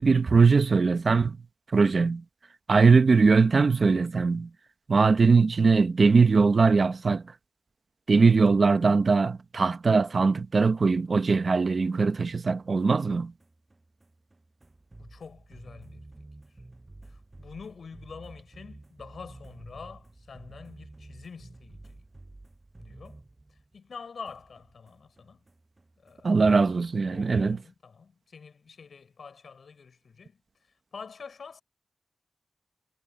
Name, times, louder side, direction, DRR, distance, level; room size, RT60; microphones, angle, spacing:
voice 1, 0.0-1.4 1.7-2.2 2.7-4.5 4.9-7.2 8.1-13.3 26.2-27.6, right 4 dB, 55° right, 1.1 m, -21 dB
sound 1, 11.7-24.0 24.2-27.0, right 2 dB, 25° right, 7.9 m, -51 dB
voice 2, 15.0-16.1 17.0-22.0 22.8-23.2 23.7-25.4 26.0-26.4 27.1-30.4 30.9-31.6, left 5 dB, 80° left, 6.5 m, -46 dB
wide cardioid pair, 100°, 0 cm